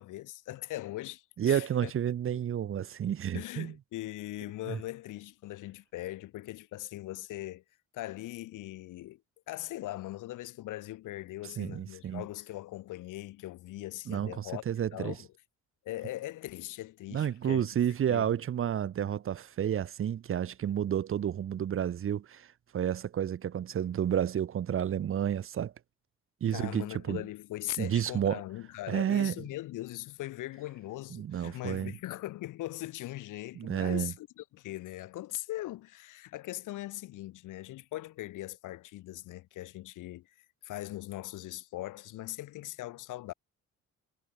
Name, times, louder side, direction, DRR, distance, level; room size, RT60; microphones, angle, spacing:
voice 1, 0.0-1.9 2.3-2.4 3.3-7.6 7.9-9.2 9.5-14.6 14.9-15.3 15.9-17.7 18.1-18.3 26.5-40.3 40.6-43.3, left 16 dB, 90° left, 3.7 m, -40 dB
voice 2, 1.4-3.7 4.7-4.8 11.6-12.2 14.1-15.1 17.1-22.5 22.7-25.7 26.4-27.2 27.8-28.4 28.9-29.3 31.1-31.9 33.6-34.1, right 9 dB, 45° right, 0.7 m, -30 dB
cardioid pair, 90°, 30 cm